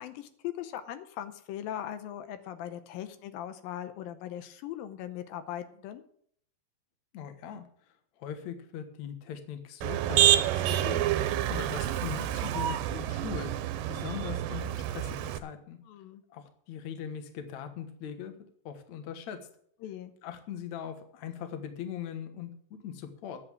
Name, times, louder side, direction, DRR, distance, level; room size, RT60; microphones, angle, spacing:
voice 1, 0.0-6.0 15.9-16.2 19.8-20.1, left 11 dB, 85° left, 10 dB, 2.6 m, -39 dB
voice 2, 7.1-7.7 8.2-13.5 13.9-15.8 16.3-18.3 18.7-19.4 20.2-23.4, left 8 dB, 60° left, 8 dB, 2.4 m, -40 dB
Motor vehicle (road), 9.8-15.4, right 12 dB, 90° right, 2.5 m, -28 dB
11.0 x 7.7 x 7.3 m, 0.64 s
omnidirectional pair, 4.0 m